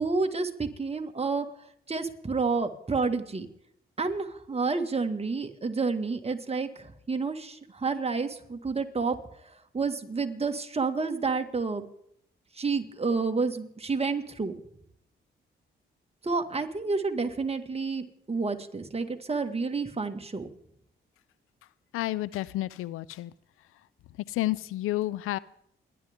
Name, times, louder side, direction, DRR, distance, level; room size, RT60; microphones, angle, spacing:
voice 1, 0.0-1.5 1.9-3.5 4.0-9.2 9.7-11.9 12.6-14.5 16.2-20.5, right 4 dB, 30° right, 6 dB, 1.9 m, -29 dB
voice 2, 21.9-23.3 24.3-25.4, left 16 dB, 90° left, 21 dB, 0.5 m, -30 dB
28.5 x 11.0 x 3.6 m, 0.72 s
supercardioid pair, 60°, 21 cm